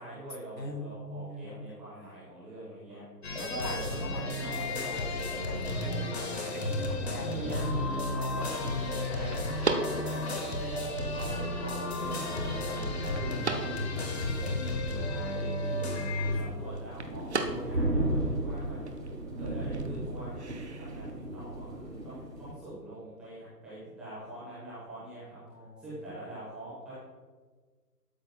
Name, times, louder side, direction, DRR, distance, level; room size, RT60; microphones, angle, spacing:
voice 1, 0.0-3.0 3.5-4.6 7.2-9.5 9.8-13.7 14.4-15.9 16.3-18.8 19.4-21.0 21.3-26.9, right 1 dB, ahead, -13 dB, 1.1 m, -43 dB
voice 2, 0.6-1.9 2.9-6.1 6.4-7.5 7.9-9.6 25.5-25.9, left 1 dB, 80° left, 3 dB, 1.9 m, -42 dB
sound 1, 3.2-16.4, left 2 dB, 40° left, 1.2 m, -33 dB
sound 2, 5.7-21.1, right 3 dB, 45° right, 0.7 m, -41 dB
sound 3, 7.0-22.5, right 1 dB, 75° right, 2.4 m, -38 dB
12.0 x 6.2 x 2.2 m, 1.4 s
figure-of-eight pair, 140°, 49 cm